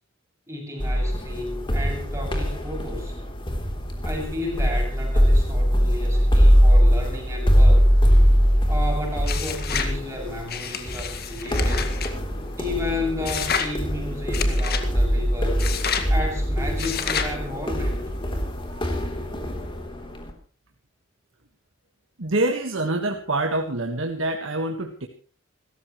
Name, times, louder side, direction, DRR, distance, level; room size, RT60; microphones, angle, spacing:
voice 1, 0.5-3.2 4.0-7.9 8.7-11.9 12.5-15.6 16.1-18.0, left 2 dB, 15° right, 0 dB, 7.1 m, -32 dB
sound 1, 0.8-20.3, equal, 25° left, 3.5 m, -22 dB
sound 2, 9.2-9.9 10.5-12.1 13.2-13.7 14.3-14.9 15.6-16.1 16.8-17.3, left 7 dB, 50° left, 2.0 m, -29 dB
voice 2, 22.2-25.1, right 2 dB, 65° right, 4 dB, 1.6 m, -25 dB
28.0 x 14.5 x 3.2 m, 0.39 s
head